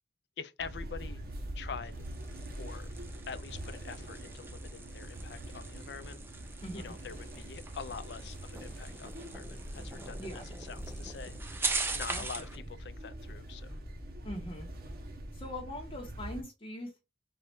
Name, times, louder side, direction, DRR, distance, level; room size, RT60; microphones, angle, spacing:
voice 1, 0.4-1.2 1.5-2.0 2.6-2.9 3.3-6.4 6.7-11.7 11.9-13.8, left 6 dB, 70° left, 0.5 m, -45 dB
sound 1, 0.6-16.4, right 1 dB, 55° right, 1.0 m, -44 dB
sound 2, 1.9-12.6, right 3 dB, 15° right, 0.5 m, -41 dB
voice 2, 6.6-6.9 10.2-10.5 12.1-12.2 14.2-14.7 15.3-17.0, left 1 dB, 30° left, 0.9 m, -41 dB
4.3 x 2.4 x 4.2 m
head